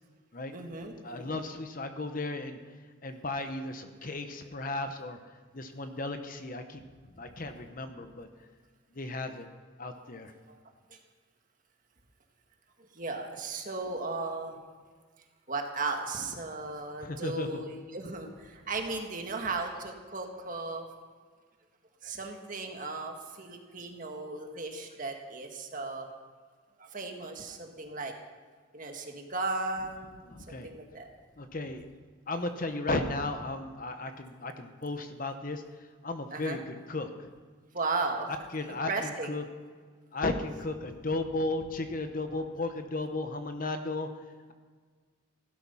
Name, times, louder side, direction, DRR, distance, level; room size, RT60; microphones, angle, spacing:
voice 1, 0.5-0.9 10.5-10.6 12.9-14.6 15.5-20.9 22.0-26.1 26.8-28.1 28.7-31.1 36.3-36.6 37.7-38.3 38.7-39.4, right 3 dB, 40° right, 3 dB, 1.6 m, -36 dB
voice 2, 1.0-2.6 3.0-6.8 7.2-8.3 8.9-9.5 9.8-10.3 17.0-17.6 30.3-30.7 31.4-31.8 32.3-35.6 36.0-37.3 38.5-39.4 40.1-44.1, left 2 dB, 40° left, 7 dB, 1.0 m, -35 dB
16.0 x 12.0 x 5.6 m, 1.5 s
head